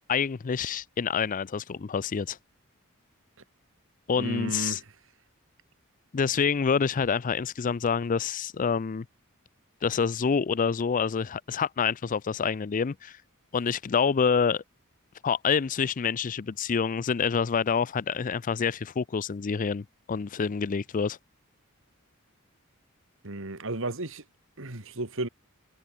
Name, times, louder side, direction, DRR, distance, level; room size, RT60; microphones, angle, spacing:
voice 1, 0.1-2.4 4.1-4.8 6.1-9.1 9.8-13.2 13.5-14.6 15.2-21.2, left 6 dB, 40° left, 0.4 m, -27 dB
voice 2, 4.2-4.8 23.2-24.2 24.6-25.3, right 2 dB, 65° right, 2.7 m, -33 dB
head